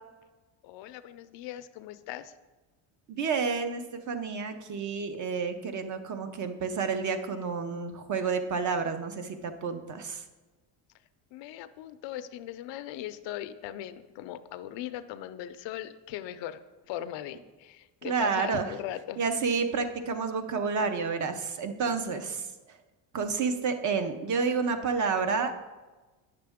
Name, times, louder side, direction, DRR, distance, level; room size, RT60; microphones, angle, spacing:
voice 1, 0.6-2.3 11.3-16.6 16.9-19.2 21.8-22.3, left 12 dB, 65° left, 12 dB, 0.6 m, -39 dB
voice 2, 3.1-10.2 18.0-18.7 19.2-22.5 23.1-25.5, right 5 dB, 40° right, 8 dB, 0.7 m, -30 dB
9.1 x 6.7 x 3.5 m, 1.2 s
cardioid pair, 130°, 47 cm